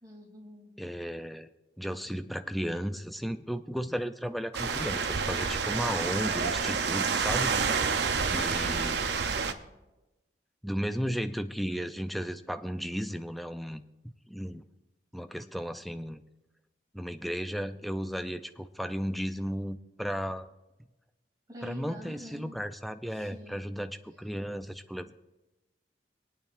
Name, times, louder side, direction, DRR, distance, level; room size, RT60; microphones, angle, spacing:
voice 1, 0.0-0.8 8.5-9.6 21.5-22.5 23.1-23.8, equal, 20° right, -2 dB, 2.8 m, -47 dB
voice 2, 0.8-1.5 1.8-7.9 8.3-9.0 10.6-14.6 15.1-16.2 16.9-20.5 21.6-25.3, equal, ahead, 9 dB, 0.4 m, -35 dB
sound 1, 4.5-9.5, right 5 dB, 70° right, 0.7 m, -29 dB
24.0 x 9.1 x 2.5 m, 1.0 s
head